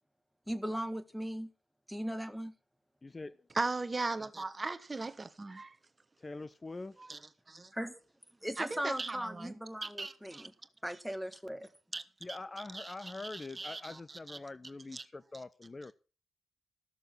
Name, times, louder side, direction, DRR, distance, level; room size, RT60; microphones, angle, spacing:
voice 1, 0.5-1.5 1.9-2.6 7.7-8.0 8.4-10.5 10.8-11.7, equal, ahead, 1.6 m, -38 dB
voice 2, 3.0-3.5 6.2-7.1 12.2-15.9, left 3 dB, 30° left, 0.6 m, -44 dB
voice 3, 3.5-5.8 7.0-7.2 7.5-7.7 8.6-10.5 11.9-12.0 12.7-14.0 14.9-15.0, right 3 dB, 35° right, 1.2 m, -38 dB
14.5 x 6.8 x 6.0 m
supercardioid pair, 45°, 0 cm